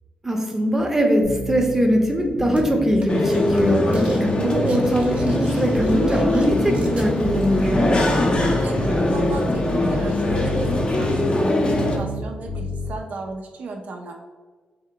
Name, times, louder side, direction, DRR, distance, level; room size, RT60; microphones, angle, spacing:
voice 1, 0.2-7.9, equal, 15° right, 1 dB, 0.7 m, -21 dB
sound 1, 1.2-13.0, left 1 dB, 75° left, 0.9 m, -30 dB
sound 2, 2.5-2.6 3.0-3.3 3.5-4.2 4.5-7.1, right 2 dB, 45° right, 0.8 m, -43 dB
sound 3, 3.1-12.0, left 1 dB, 35° left, 0.6 m, -22 dB
voice 2, 8.3-14.1, right 3 dB, 65° right, 2 dB, 0.4 m, -35 dB
3.7 x 2.1 x 3.7 m, 1.4 s
cardioid pair, 75°, 3 cm